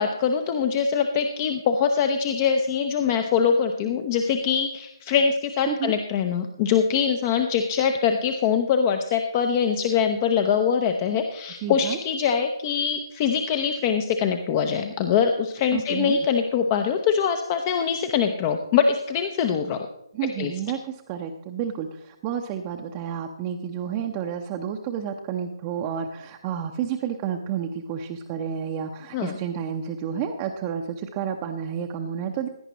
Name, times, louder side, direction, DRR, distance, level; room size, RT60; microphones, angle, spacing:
voice 1, 0.0-19.9 20.4-20.5 29.1-29.4, left 7 dB, 25° left, 7 dB, 0.7 m, -23 dB
voice 2, 11.6-12.0 15.7-16.2 20.1-32.5, right 8 dB, 20° right, 2 dB, 0.8 m, -30 dB
17.0 x 10.0 x 3.0 m, 0.84 s
figure-of-eight pair, 140°, 3 cm